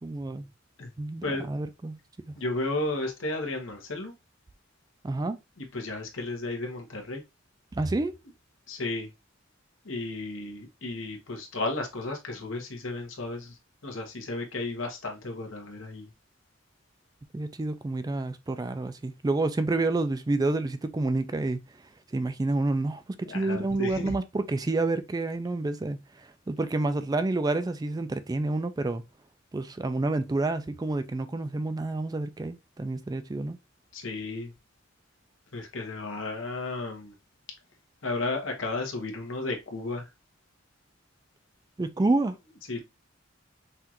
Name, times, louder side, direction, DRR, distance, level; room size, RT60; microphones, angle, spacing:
voice 1, 0.0-0.5 1.0-2.0 5.0-5.4 7.7-8.1 17.3-21.6 22.1-26.0 26.5-29.0 29.5-33.6 41.8-42.4, right 2 dB, 20° right, 0.3 m, -28 dB
voice 2, 2.4-4.1 5.6-7.2 8.7-9.1 9.8-13.5 13.8-16.1 23.2-24.1 33.9-34.5 35.5-37.1 38.0-40.1 42.7-42.8, left 2 dB, 80° left, 1.2 m, -33 dB
5.6 x 2.5 x 2.9 m
head